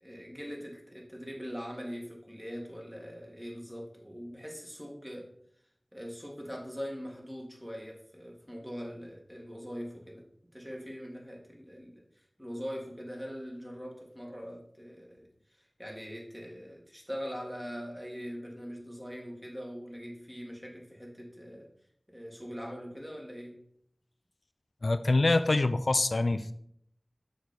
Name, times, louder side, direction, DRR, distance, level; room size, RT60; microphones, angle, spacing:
voice 1, 0.0-5.3 5.9-10.2 10.5-15.3 15.5-21.7 22.1-23.6, equal, 10° right, -1 dB, 2.2 m, -42 dB
voice 2, 24.8-26.5, left 2 dB, 90° left, 11 dB, 0.3 m, -25 dB
6.6 x 5.3 x 4.4 m, 0.67 s
wide cardioid pair, 50°, 0 cm